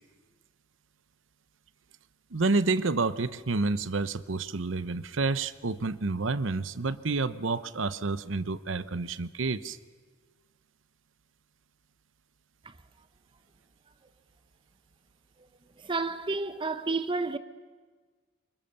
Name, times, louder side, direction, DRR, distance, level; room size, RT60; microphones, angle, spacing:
voice 1, 2.3-9.8, right 3 dB, 75° right, 0.9 m, -29 dB
voice 2, 15.8-17.4, right 3 dB, 25° right, 0.7 m, -30 dB
28.0 x 24.5 x 6.7 m
head